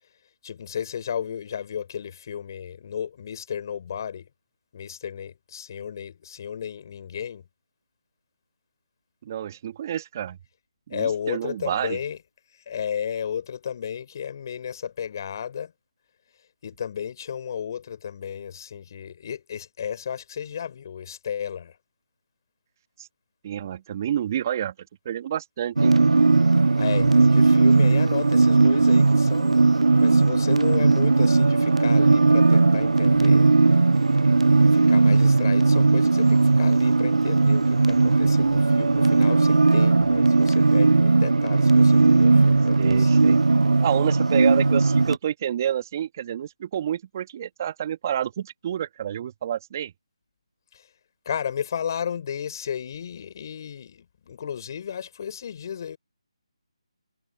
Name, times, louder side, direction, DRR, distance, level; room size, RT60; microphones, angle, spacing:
voice 1, 0.4-4.3 4.7-7.4 10.9-12.2 12.7-15.7 16.6-21.7 26.8-33.5 34.7-43.1 50.7-50.8 51.3-56.0, left 8 dB, 40° left, 5.7 m, -33 dB
voice 2, 9.2-10.4 10.9-12.0 23.0-23.1 23.4-24.7 25.0-26.0 42.8-43.4 43.8-49.9, right 10 dB, 30° right, 2.5 m, -29 dB
sound 1, 25.8-45.2, right 3 dB, 85° right, 0.3 m, -18 dB
figure-of-eight pair, 160°, 3 cm